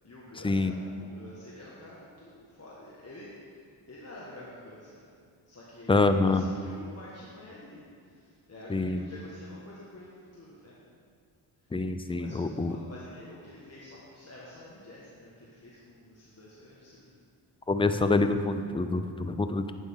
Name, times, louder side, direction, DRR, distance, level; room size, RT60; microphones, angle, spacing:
voice 1, 0.0-5.0 5.5-10.9 11.6-11.7 12.2-17.0, left 1 dB, 30° left, -6 dB, 1.6 m, -48 dB
voice 2, 5.9-6.5 8.7-9.0 11.7-12.8 17.7-19.7, left 3 dB, 10° left, 9 dB, 0.4 m, -26 dB
11.0 x 8.7 x 3.7 m, 2.2 s
cardioid pair, 90°, 50 cm